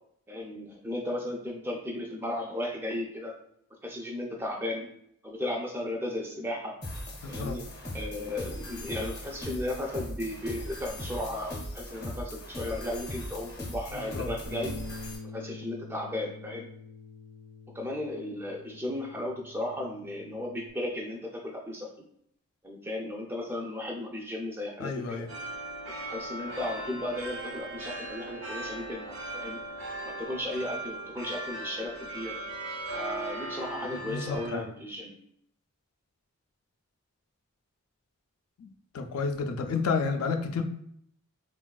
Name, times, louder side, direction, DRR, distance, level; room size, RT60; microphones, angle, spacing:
voice 1, 0.3-3.4 3.8-4.9 5.2-6.7 7.3-7.7 7.9-14.8 15.3-16.7 17.7-21.9 22.6-25.3 26.1-29.6 30.0-32.4 32.9-35.2, left 1 dB, 10° right, 0 dB, 0.3 m, -35 dB
sound 1, 6.8-15.2, left 1 dB, 45° left, 0.7 m, -39 dB
voice 2, 7.2-7.6 14.0-14.3 24.8-25.3 33.9-34.6 38.6-38.7 38.9-40.6, left 4 dB, 80° left, 6 dB, 0.4 m, -31 dB
Bass guitar, 14.5-20.7, left 3 dB, 55° right, 0.6 m, -45 dB
sound 2, 25.3-34.5, right 1 dB, 75° right, 0.9 m, -38 dB
3.4 x 2.3 x 2.2 m, 0.71 s
head